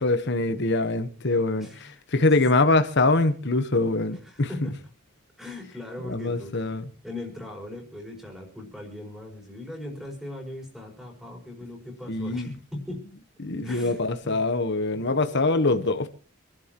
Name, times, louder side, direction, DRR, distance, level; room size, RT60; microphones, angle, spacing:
voice 1, 0.0-1.7 2.1-4.7 6.0-6.8 12.1-12.5 13.4-16.1, left 2 dB, 55° left, 1.1 m, -23 dB
voice 2, 1.6-2.3 4.2-4.7 5.4-6.8 7.0-13.0 13.6-14.4 14.9-15.2, left 1 dB, ahead, 5.1 m, -39 dB
27.0 x 11.5 x 3.0 m
head